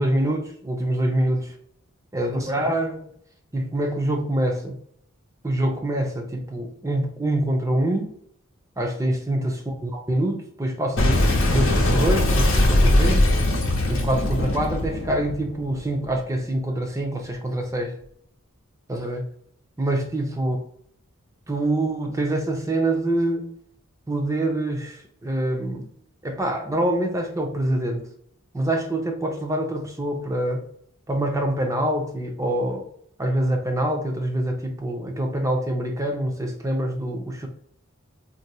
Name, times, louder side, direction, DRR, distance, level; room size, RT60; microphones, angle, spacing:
voice 1, 0.0-1.5 2.1-3.1 3.5-4.8 5.4-8.1 8.8-13.3 13.9-18.0 18.9-19.3 19.8-20.6 21.5-23.5 24.1-25.9 26.2-28.0 28.5-30.7 31.1-32.9 33.2-37.5, right 1 dB, 15° right, 0.5 m, -25 dB
Boom, 11.0-16.2, left 1 dB, 70° left, 0.9 m, -20 dB
4.1 x 2.5 x 2.2 m
head